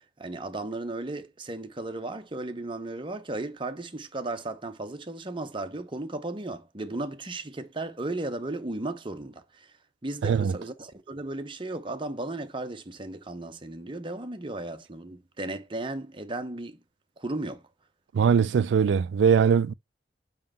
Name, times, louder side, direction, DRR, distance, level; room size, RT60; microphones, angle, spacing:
voice 1, 0.0-9.7 10.0-16.8 17.2-17.6, right 2 dB, 30° right, 0.9 m, -35 dB
voice 2, 10.2-10.5 18.1-19.7, right 6 dB, 75° right, 0.3 m, -21 dB
5.7 x 5.2 x 5.4 m
head